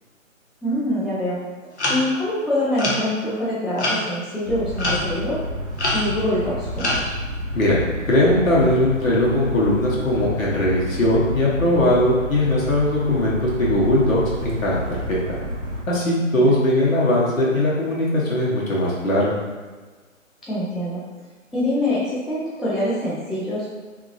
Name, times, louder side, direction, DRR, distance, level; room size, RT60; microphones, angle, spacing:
voice 1, 0.6-1.4 1.9-5.6 5.9-7.1 16.3-16.5 20.4-21.0 21.5-23.7, left 1 dB, ahead, -8 dB, 0.3 m, -25 dB
sound 1, 1.8-2.1 2.8-3.0 3.8-4.0 4.8-5.1 5.8-6.3 6.8-7.0, left 1 dB, 55° left, 0.7 m, -24 dB
sound 2, 4.5-15.8, equal, 65° right, 0.6 m, -30 dB
voice 2, 8.1-15.4 15.9-19.3, left 1 dB, 75° left, -6 dB, 1.2 m, -20 dB
2.8 x 2.5 x 2.6 m, 1.4 s
hypercardioid pair, 180°, 40 cm